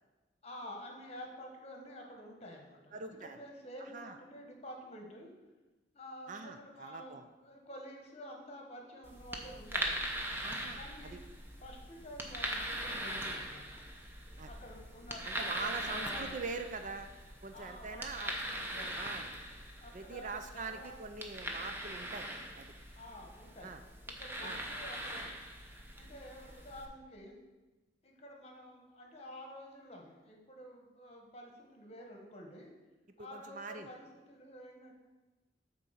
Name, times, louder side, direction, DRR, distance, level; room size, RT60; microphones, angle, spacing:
voice 1, 0.4-5.3 5.9-10.0 10.8-11.3 11.6-13.8 14.4-16.4 17.5-19.0 19.8-21.0 23.0-23.8 24.0-25.3 25.9-27.4 28.0-32.7 33.2-34.9, equal, 35° left, 1 dB, 1.2 m, -50 dB
voice 2, 2.9-3.4 3.9-4.2 6.3-7.3 10.4-11.2 14.4-14.5 15.2-17.1 17.4-18.3 19.0-19.3 19.9-22.3 22.6-22.7 23.6-23.8 24.4-24.6 33.2-33.9, right 4 dB, 45° right, 7 dB, 0.4 m, -43 dB
sound 1, 9.0-26.9, right 1 dB, 10° right, 0.8 m, -41 dB
8.3 x 4.1 x 5.7 m, 1.2 s
head